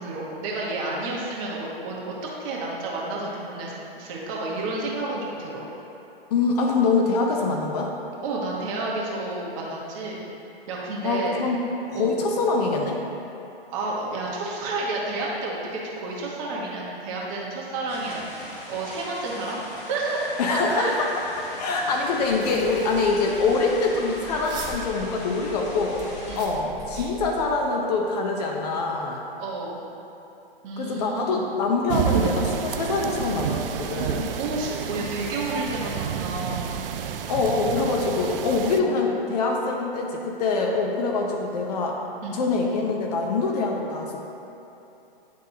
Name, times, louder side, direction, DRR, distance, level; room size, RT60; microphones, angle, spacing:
voice 1, 0.0-5.6 8.2-10.2 10.7-11.4 11.9-12.1 13.7-21.0 26.3-26.5 29.4-29.8 30.6-31.4 34.4-36.7 38.6-38.8 42.2-42.5, right 2 dB, 35° right, -4 dB, 1.1 m, -30 dB
voice 2, 6.3-7.9 11.0-13.0 20.4-21.3 21.6-29.2 30.8-34.4 37.3-42.0 42.3-44.2, left 3 dB, 40° left, 1 dB, 0.7 m, -24 dB
sound 1, 17.9-26.4, left 1 dB, 25° left, 1.0 m, -41 dB
sound 2, 22.2-27.6, equal, 15° right, 0.5 m, -41 dB
sound 3, 31.9-38.8, right 8 dB, 65° right, 0.4 m, -29 dB
9.3 x 3.9 x 2.7 m, 2.9 s
hypercardioid pair, 130°, 30 cm